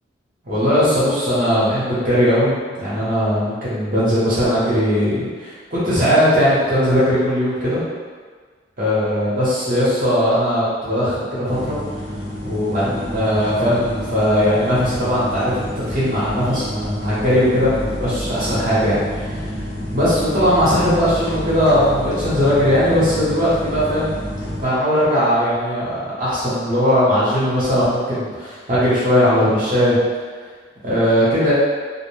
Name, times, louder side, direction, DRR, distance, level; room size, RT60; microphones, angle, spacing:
voice 1, 0.4-7.8 8.8-11.8 12.4-19.5 19.9-24.2 24.6-30.0 30.8-31.5, equal, 45° right, -11 dB, 0.8 m, -19 dB
sound 1, 11.5-24.6, equal, 90° left, 1.0 m, -29 dB
2.4 x 2.1 x 3.2 m, 1.5 s
head